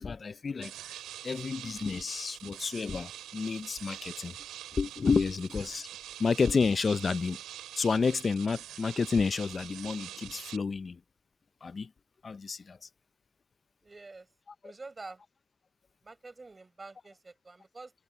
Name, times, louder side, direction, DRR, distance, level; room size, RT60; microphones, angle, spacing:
voice 1, 0.0-4.3 4.7-5.9 6.2-7.4 7.8-11.0 11.6-11.9 12.2-12.9, left 5 dB, 45° left, 0.5 m, -30 dB
sound 1, 0.6-10.6, right 12 dB, 80° right, 4.8 m, -45 dB
voice 2, 13.8-14.3 14.6-15.2 16.0-17.9, right 3 dB, 30° right, 6.3 m, -47 dB
supercardioid pair, 50°, 0 cm